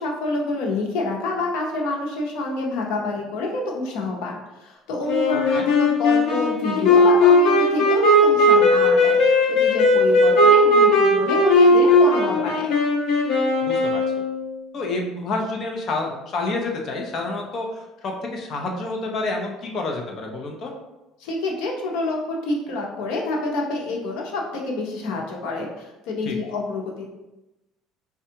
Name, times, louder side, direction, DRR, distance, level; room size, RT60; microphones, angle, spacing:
voice 1, 0.0-12.7 21.2-27.1, left 2 dB, 85° left, -1 dB, 0.8 m, -27 dB
Wind instrument woodwind instrument, 5.1-14.5, left 1 dB, 60° left, 1.0 m, -17 dB
voice 2, 5.3-5.7 13.6-14.0 14.7-20.7 26.2-26.4, left 2 dB, 40° left, 1 dB, 0.6 m, -29 dB
4.4 x 2.3 x 2.8 m, 0.99 s
cardioid pair, 160°, 0 cm